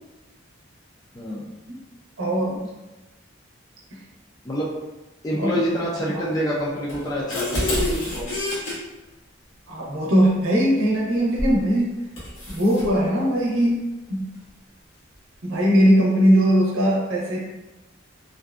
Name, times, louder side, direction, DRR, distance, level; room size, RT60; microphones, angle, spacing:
voice 1, 1.1-1.5 4.4-4.7 5.2-8.3, equal, 20° left, -6 dB, 0.4 m, -27 dB
voice 2, 2.2-2.7 3.9-4.0 5.3-5.5 6.1-6.2 9.7-11.9 12.5-14.3 15.4-17.4, equal, 80° right, -4 dB, 0.7 m, -20 dB
sound 1, 6.9-8.7 11.4-11.6 12.2-12.9, left 1 dB, 85° left, 1.0 m, -27 dB
2.6 x 2.2 x 2.3 m, 1.0 s
head